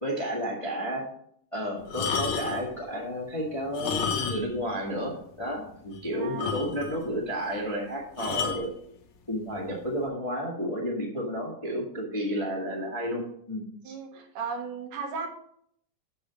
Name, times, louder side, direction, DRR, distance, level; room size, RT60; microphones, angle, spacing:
voice 1, 0.0-1.0 1.5-8.7 9.3-13.9, equal, 15° left, -2 dB, 1.0 m, -32 dB
sound 1, 1.9-2.7 3.6-4.6 4.9-5.0 5.6-5.7 5.9-6.0 6.4-7.0 8.2-8.6 9.5-9.7, left 6 dB, 65° left, 2.3 m, -31 dB
voice 2, 6.1-6.4 13.8-15.3, right 5 dB, 85° right, 3 dB, 2.9 m, -35 dB
7.4 x 7.0 x 5.1 m, 0.67 s
omnidirectional pair, 3.5 m